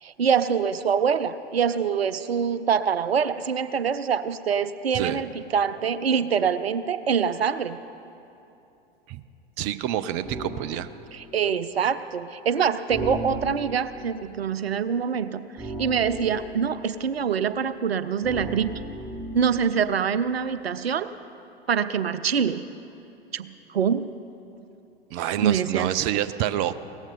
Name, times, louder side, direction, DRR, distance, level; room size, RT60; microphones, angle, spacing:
voice 1, 0.0-7.8 11.1-18.7 19.3-21.1 21.7-22.6 23.3-24.1 25.4-26.0, right 7 dB, 75° right, 14 dB, 0.6 m, -25 dB
voice 2, 9.6-10.9 25.1-26.7, right 11 dB, 35° right, 15 dB, 0.5 m, -27 dB
sound 1, 10.2-10.7 12.9-13.8 15.6-16.7 18.2-19.6, right 1 dB, 10° right, 1.9 m, -35 dB
17.5 x 14.5 x 5.5 m, 2.9 s
figure-of-eight pair, 90°, 31 cm